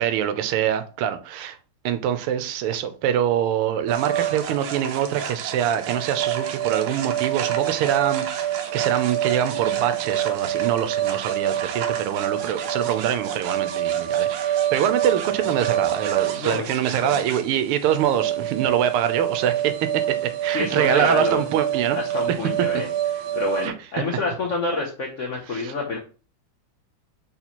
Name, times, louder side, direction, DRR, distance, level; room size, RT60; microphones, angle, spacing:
voice 1, 0.0-1.6 1.8-22.0 23.6-23.7 25.5-25.7, right 10 dB, 90° right, 1.5 m, -24 dB
sound 1, 3.9-23.7, right 11 dB, 70° right, 1.3 m, -27 dB
voice 2, 16.4-17.2 20.5-21.4 21.9-26.0, left 3 dB, 80° left, 0.6 m, -28 dB
4.1 x 2.9 x 4.1 m
omnidirectional pair, 2.4 m